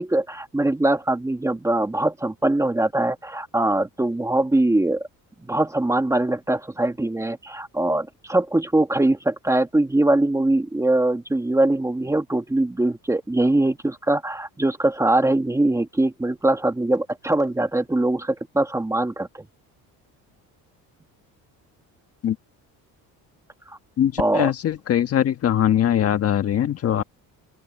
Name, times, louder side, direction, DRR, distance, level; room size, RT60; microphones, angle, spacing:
voice 1, 0.0-5.1 5.4-19.3 23.7-23.8 24.2-24.5, right 2 dB, 10° right, 1.5 m, -22 dB
voice 2, 24.0-27.0, left 10 dB, 45° left, 1.4 m, -21 dB
open air
cardioid pair, 145°, 34 cm